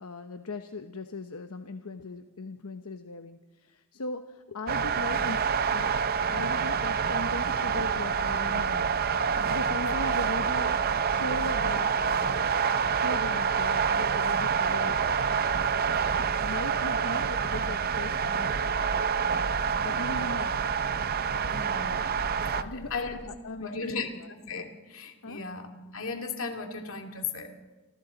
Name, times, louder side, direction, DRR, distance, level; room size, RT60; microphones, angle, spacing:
voice 1, 0.0-5.4 5.7-5.9 6.3-8.9 9.5-12.5 12.9-15.0 16.4-19.3 19.8-20.7 22.6-24.3 25.2-25.4, left 3 dB, 85° left, 7 dB, 0.9 m, -39 dB
sound 1, 4.7-22.6, right 6 dB, 45° right, 0.6 m, -27 dB
sound 2, 7.7-7.8 8.5-15.8, equal, 70° right, 5.0 m, -48 dB
voice 2, 9.8-10.2 15.9-16.0 21.4-23.2 23.6-27.6, left 4 dB, 65° left, 4 dB, 2.5 m, -37 dB
sound 3, 16.6-23.3, equal, 30° right, 6.4 m, -47 dB
28.5 x 24.5 x 4.0 m, 1.2 s
head